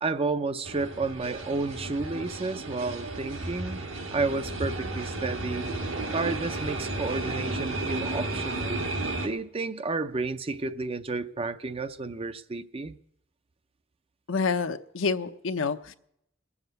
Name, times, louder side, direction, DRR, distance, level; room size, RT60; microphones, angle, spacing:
voice 1, 0.0-3.8 4.1-5.7 6.1-8.9 9.2-13.0, right 3 dB, 30° right, 0.5 m, -31 dB
sound 1, 0.6-9.3, right 2 dB, 70° right, 1.6 m, -33 dB
voice 2, 14.3-15.9, left 4 dB, 75° left, 0.7 m, -28 dB
21.0 x 7.2 x 8.0 m
head